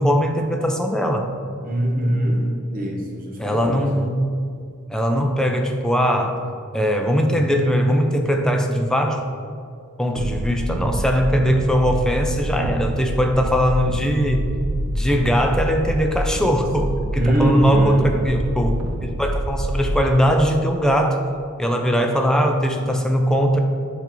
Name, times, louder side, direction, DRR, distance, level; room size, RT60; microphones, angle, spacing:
voice 1, 0.0-1.3 3.4-4.3 4.9-6.4 6.7-9.2 10.0-14.5 14.9-21.2 21.6-23.6, equal, 5° left, 3 dB, 0.4 m, -20 dB
voice 2, 1.6-3.8 17.2-18.1, equal, 40° right, -1 dB, 1.1 m, -22 dB
sound 1, 10.1-20.0, right 1 dB, 90° right, 0.5 m, -26 dB
8.1 x 3.4 x 4.5 m, 2.3 s
head